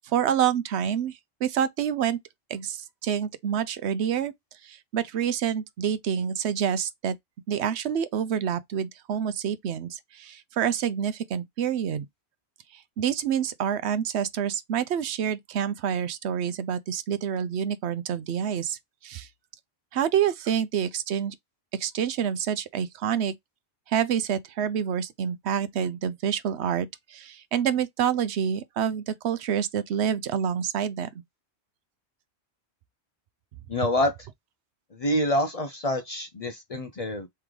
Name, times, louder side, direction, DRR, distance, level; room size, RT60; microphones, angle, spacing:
voice 1, 0.0-2.2 2.5-4.3 4.6-7.2 7.5-12.1 12.7-19.3 19.9-21.3 21.7-23.3 23.9-31.1, right 8 dB, 75° right, 0.9 m, -27 dB
voice 2, 33.7-34.1 34.9-37.3, left 1 dB, 40° left, 0.6 m, -26 dB
3.7 x 3.3 x 3.1 m
omnidirectional pair, 1.1 m